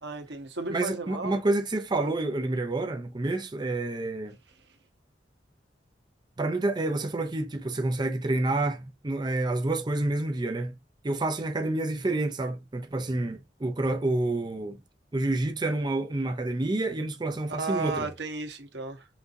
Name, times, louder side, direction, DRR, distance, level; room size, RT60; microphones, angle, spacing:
voice 1, 0.0-1.4 2.0-2.1 17.6-19.1, right 3 dB, 75° right, 1.2 m, -34 dB
voice 2, 0.7-4.4 6.4-10.7 11.0-14.8 15.1-18.1, right 2 dB, 25° right, 0.5 m, -28 dB
5.8 x 2.8 x 2.6 m
head